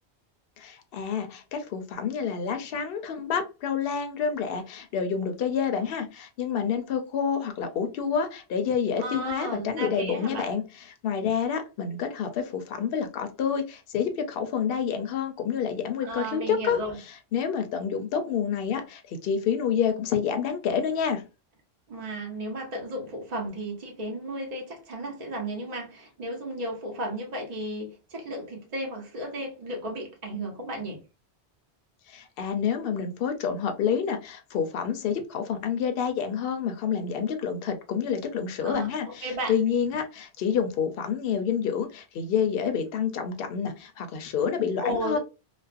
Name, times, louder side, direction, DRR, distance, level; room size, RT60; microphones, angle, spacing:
voice 1, 0.6-16.8 17.3-21.3 32.1-45.2, left 7 dB, 65° left, 0.7 m, -28 dB
voice 2, 9.0-10.5 16.0-17.0 21.9-31.0 38.6-39.5 44.8-45.2, right 1 dB, 40° right, 0.8 m, -34 dB
2.4 x 2.1 x 2.4 m
omnidirectional pair, 1.1 m